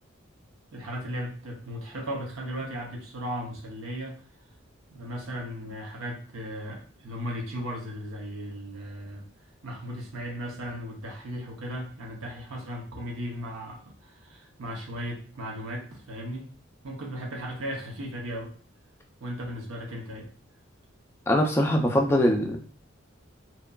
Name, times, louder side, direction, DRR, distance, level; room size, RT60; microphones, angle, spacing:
voice 1, 0.7-4.2 4.9-9.2 9.6-16.5 16.8-18.5 19.2-20.3, equal, 80° right, 0 dB, 0.6 m, -36 dB
voice 2, 21.3-22.6, equal, 10° left, 1 dB, 0.4 m, -22 dB
2.9 x 2.4 x 2.2 m, 0.41 s
head